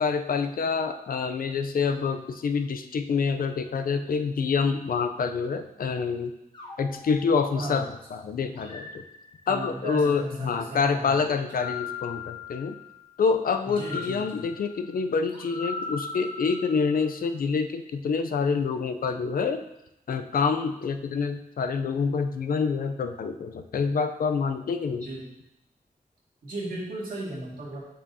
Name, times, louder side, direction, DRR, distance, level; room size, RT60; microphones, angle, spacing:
voice 1, 0.0-6.3 6.8-9.0 9.5-12.8 13.2-19.6 20.1-25.1, left 5 dB, 70° left, 8 dB, 0.5 m, -27 dB
sound 1, 6.5-7.9 8.5-9.8 11.3-13.0 13.7-17.2, left 4 dB, 30° left, 1.2 m, -40 dB
voice 2, 9.5-11.2 11.5-11.7 13.6-14.4 25.0-25.3 26.4-27.8, right 2 dB, 70° right, -6 dB, 2.0 m, -36 dB
6.7 x 6.1 x 2.7 m, 0.86 s
wide cardioid pair, 165°, 15 cm